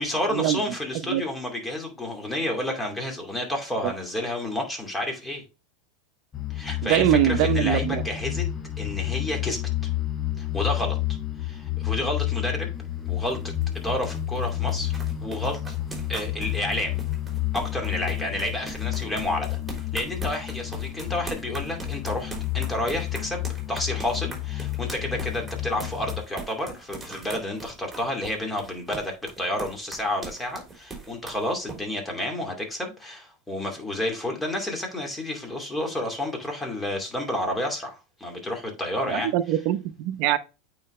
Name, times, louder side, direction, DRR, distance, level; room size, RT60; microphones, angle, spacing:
voice 1, 0.0-5.4 6.5-8.5 8.8-9.7 10.4-11.0 11.4-12.7 13.1-14.9 15.2-15.7 16.1-17.0 17.5-19.6 19.9-23.4 23.7-39.3, left 1 dB, 10° left, 2.5 m, -30 dB
sound 1, 6.3-26.2, left 13 dB, 30° left, 0.8 m, -30 dB
voice 2, 6.8-8.0 39.1-40.4, right 13 dB, 60° right, 0.8 m, -23 dB
sound 2, 12.7-31.8, right 3 dB, 10° right, 3.3 m, -41 dB
8.7 x 4.0 x 3.2 m
hypercardioid pair, 100°, 0 cm